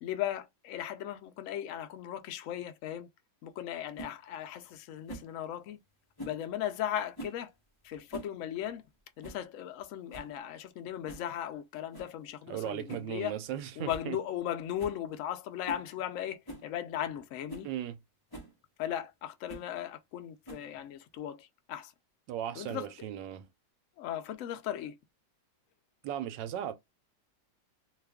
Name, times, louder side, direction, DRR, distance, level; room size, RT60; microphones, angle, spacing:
voice 1, 0.0-3.1 3.4-5.8 6.2-7.5 7.8-8.8 9.2-13.3 13.8-17.7 18.8-21.9 22.6-23.1 24.0-25.0, left 11 dB, 80° left, 0.7 m, -37 dB
sound 1, 4.0-4.1 5.1-5.3 6.2-6.4 7.1-7.4 7.9-8.4 8.6-8.7 9.2-9.5 9.8-9.9 10.1-10.4 11.1-11.3 11.9-12.2 12.9-13.1 13.5-13.6 13.9-14.1 14.4-14.5 14.8-15.0 15.6-15.9 16.5-16.7 17.2-17.3 17.5-17.7 18.3-18.5 19.5-19.7 20.5-20.8, right 1 dB, 20° left, 0.7 m, -45 dB
voice 2, 12.5-14.2 17.6-18.0 22.3-23.5 26.0-26.8, right 11 dB, 85° right, 1.2 m, -37 dB
2.9 x 2.3 x 3.4 m
omnidirectional pair, 1.9 m